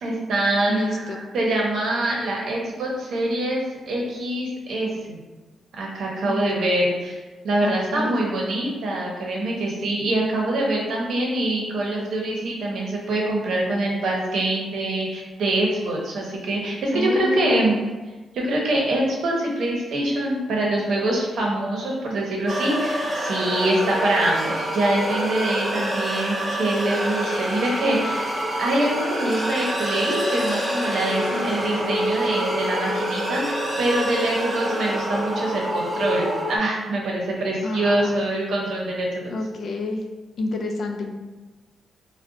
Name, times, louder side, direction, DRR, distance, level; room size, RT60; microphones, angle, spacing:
voice 1, 0.0-5.2 5.7-17.8 18.3-28.3 28.6-39.3, right 1 dB, 75° right, -2 dB, 0.7 m, -24 dB
voice 2, 0.7-1.2 6.3-6.4 7.6-8.2 16.9-17.9 31.3-31.5 37.6-38.2 39.3-40.0 40.4-41.1, left 2 dB, 55° left, 3 dB, 0.4 m, -29 dB
sound 1, 22.5-36.6, equal, 15° right, 0.6 m, -26 dB
2.4 x 2.1 x 3.8 m, 1.2 s
cardioid pair, 125°, 0 cm